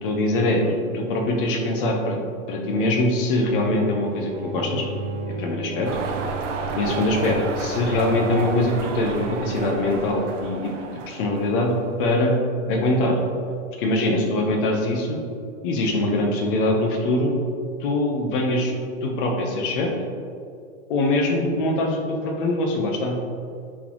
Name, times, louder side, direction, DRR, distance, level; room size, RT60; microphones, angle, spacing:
voice 1, 0.0-2.2 2.5-4.8 5.3-5.9 6.7-10.7 11.1-11.7 12.0-12.3 12.7-13.2 13.8-15.2 15.6-17.4 17.8-18.7 19.0-19.9 20.9-23.1, left 1 dB, 40° left, 1 dB, 1.2 m, -23 dB
sound 1, 4.1-9.4, right 3 dB, 40° right, 0.7 m, -35 dB
sound 2, 5.8-12.0, right 4 dB, 65° right, 0.9 m, -32 dB
9.7 x 4.4 x 3.1 m, 2.3 s
hypercardioid pair, 155°, 39 cm